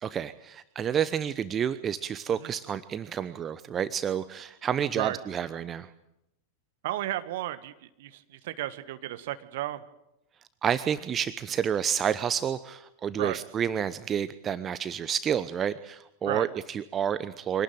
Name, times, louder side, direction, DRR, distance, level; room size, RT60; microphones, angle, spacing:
voice 1, 0.0-5.9 10.6-17.6, right 8 dB, 25° right, 14 dB, 0.9 m, -29 dB
voice 2, 6.8-9.8 13.2-13.4 16.2-16.5, right 14 dB, 55° right, 11 dB, 1.6 m, -33 dB
25.0 x 18.5 x 9.0 m, 0.85 s
figure-of-eight pair, 90°, 0 cm